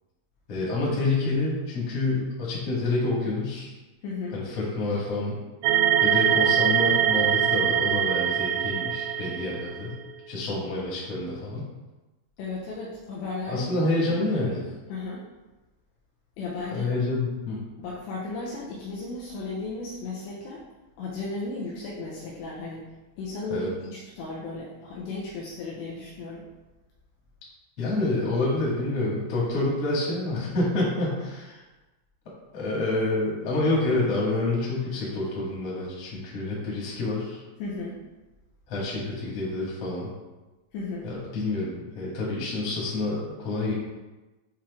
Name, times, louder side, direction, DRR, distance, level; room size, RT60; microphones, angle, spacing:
voice 1, 0.5-3.7 4.3-5.4 6.0-9.9 10.3-11.6 13.5-14.6 16.7-17.6 23.5-23.7 27.8-31.6 32.5-37.4 38.7-40.1 41.0-43.7, left 2 dB, 50° left, -6 dB, 1.9 m, -28 dB
voice 2, 4.0-4.4 12.4-14.4 14.9-15.2 16.4-17.0 17.8-20.6 21.0-22.8 23.2-26.5 37.6-38.0 40.7-41.1, left 3 dB, 80° left, -5 dB, 2.7 m, -35 dB
sound 1, 5.6-9.9, right 10 dB, 85° right, 2.9 m, -23 dB
8.6 x 3.0 x 3.6 m, 1.1 s
omnidirectional pair, 5.6 m